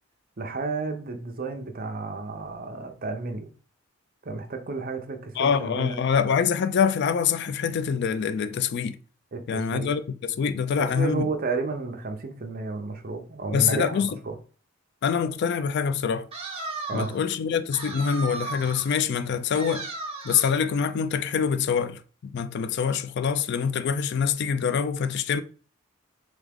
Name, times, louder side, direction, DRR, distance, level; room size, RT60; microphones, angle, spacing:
voice 1, 0.4-3.5 4.2-6.0 9.3-9.9 10.8-14.4 16.9-17.1, right 3 dB, 45° right, 0.7 m, -32 dB
voice 2, 5.4-9.0 9.5-11.3 13.5-14.1 15.0-16.3 16.9-19.9 20.2-25.4, left 7 dB, 55° left, 0.3 m, -25 dB
sound 1, 16.3-17.2 17.7-19.0 19.5-20.6, right 3 dB, 30° right, 1.1 m, -36 dB
3.6 x 3.5 x 3.5 m
head